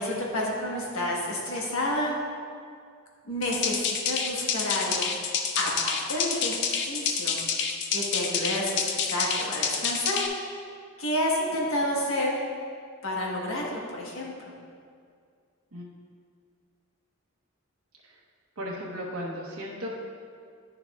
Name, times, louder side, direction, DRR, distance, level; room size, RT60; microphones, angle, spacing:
voice 1, 0.0-2.2 3.2-5.1 5.5-7.4 7.9-10.2 11.0-12.4 13.0-14.5, left 1 dB, 75° left, -2 dB, 1.3 m, -30 dB
sound 1, 3.4-10.3, left 6 dB, 60° left, 0.5 m, -28 dB
voice 2, 18.6-19.9, equal, 80° right, -4 dB, 1.0 m, -35 dB
10.0 x 6.9 x 2.3 m, 2.2 s
head